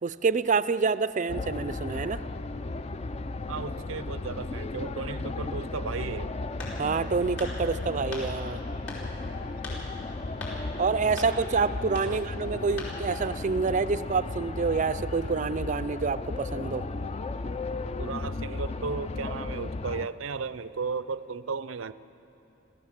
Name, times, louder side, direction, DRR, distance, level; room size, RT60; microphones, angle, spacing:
voice 1, 0.0-2.2 6.8-8.6 10.8-16.8, right 4 dB, 40° right, 14 dB, 0.4 m, -27 dB
sound 1, 1.3-20.1, left 2 dB, 30° left, 0.4 m, -35 dB
voice 2, 3.5-6.3 12.0-12.2 18.0-21.9, right 4 dB, 85° right, 15 dB, 0.6 m, -35 dB
sound 2, 6.6-7.0 7.4-7.6 8.1-8.3 8.9-9.1 9.6-9.8 10.4-10.6 11.2-11.4 11.9-12.1 12.8-13.0, left 3 dB, 65° left, 5.0 m, -39 dB
26.0 x 15.0 x 7.4 m, 2.9 s
head